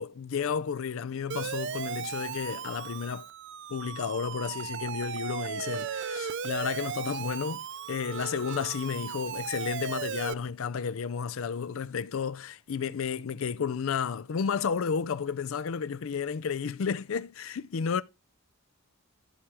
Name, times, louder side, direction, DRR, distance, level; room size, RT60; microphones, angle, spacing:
voice 1, 0.0-3.3 3.7-18.0, left 6 dB, 65° left, 0.4 m, -32 dB
Siren, 1.3-10.3, right 7 dB, 55° right, 0.4 m, -36 dB
11.5 x 6.2 x 3.4 m
head